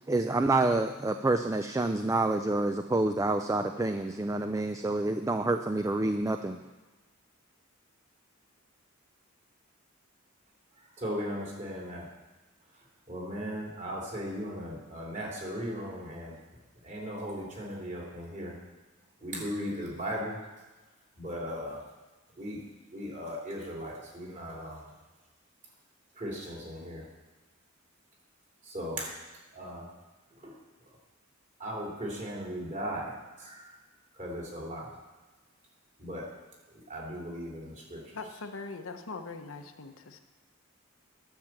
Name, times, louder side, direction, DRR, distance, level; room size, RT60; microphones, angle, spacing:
voice 1, 0.1-6.6, right 2 dB, 15° right, 7 dB, 0.4 m, -28 dB
voice 2, 11.0-12.1 13.1-16.4 16.8-18.6 19.2-20.4 21.2-21.8 22.4-22.6 22.9-24.9 26.2-27.0 28.6-29.1 29.5-29.9 30.4-30.5 31.6-33.7 34.1-34.9 36.0-36.3 36.9-38.2, equal, 35° right, -3 dB, 3.0 m, -37 dB
voice 3, 38.1-40.2, left 3 dB, 70° left, 6 dB, 0.9 m, -41 dB
10.5 x 7.1 x 7.4 m, 1.2 s
head